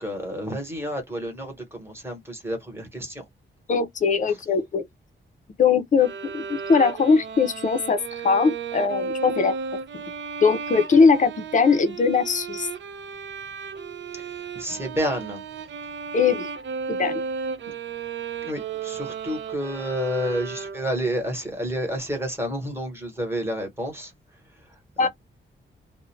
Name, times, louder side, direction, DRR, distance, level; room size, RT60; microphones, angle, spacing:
voice 1, 0.0-3.2 14.6-15.4 17.7-17.8 18.4-24.1 25.0-25.1, equal, 10° right, 1.0 m, -30 dB
voice 2, 3.7-4.8 5.6-9.5 10.4-12.7 16.1-16.5 16.9-17.2 25.0-25.1, left 5 dB, 40° left, 0.5 m, -20 dB
sound 1, 6.0-21.1, right 5 dB, 65° right, 0.5 m, -34 dB
2.4 x 2.1 x 3.0 m
wide cardioid pair, 170°, 20 cm